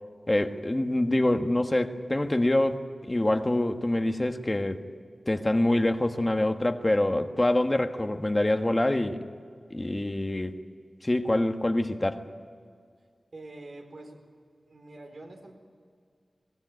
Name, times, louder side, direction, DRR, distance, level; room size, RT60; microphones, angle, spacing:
voice 1, 0.3-4.8 5.3-9.2 9.7-10.5 11.0-12.2, left 1 dB, 30° left, 6 dB, 1.4 m, -25 dB
voice 2, 13.3-14.2 14.7-15.5, right 2 dB, 70° right, 2 dB, 4.4 m, -45 dB
22.5 x 18.5 x 9.4 m, 2.1 s
cardioid pair, 50°, 0 cm